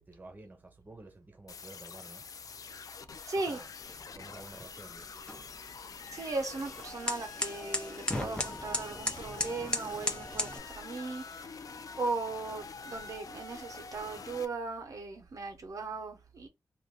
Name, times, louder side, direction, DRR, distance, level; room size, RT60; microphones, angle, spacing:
voice 1, 0.0-2.2 3.4-3.7 4.1-5.1, right 2 dB, 25° right, 1.0 m, -51 dB
sound 1, 1.5-14.4, left 5 dB, 70° left, 0.4 m, -46 dB
voice 2, 2.6-3.6 6.1-16.5, right 3 dB, 65° right, 0.7 m, -38 dB
sound 2, 3.8-10.6, left 1 dB, 15° left, 0.8 m, -38 dB
3.1 x 2.5 x 3.8 m
wide cardioid pair, 100°, 6 cm